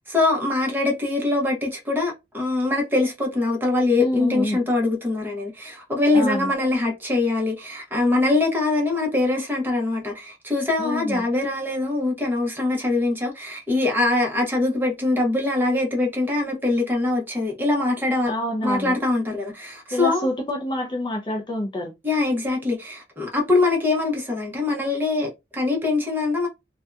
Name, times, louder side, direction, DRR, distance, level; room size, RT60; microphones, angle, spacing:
voice 1, 0.1-18.3 18.6-20.3 22.0-26.5, left 2 dB, 10° right, 0.8 m, -23 dB
voice 2, 4.0-4.6 6.1-6.5 10.8-11.3 18.3-18.9 19.9-21.9, left 1 dB, 25° left, 0.4 m, -27 dB
2.6 x 2.2 x 2.3 m
head